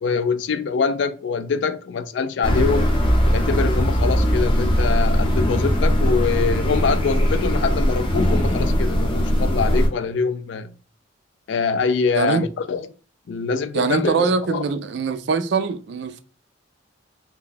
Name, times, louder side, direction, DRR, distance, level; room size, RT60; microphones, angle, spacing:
voice 1, 0.0-2.9 3.2-10.7 11.5-12.9 13.3-14.7, left 5 dB, 65° left, 0.3 m, -24 dB
sound 1, 2.4-9.9, equal, 25° left, 0.6 m, -20 dB
voice 2, 13.7-16.2, right 5 dB, 60° right, 0.3 m, -22 dB
2.7 x 2.1 x 3.9 m
head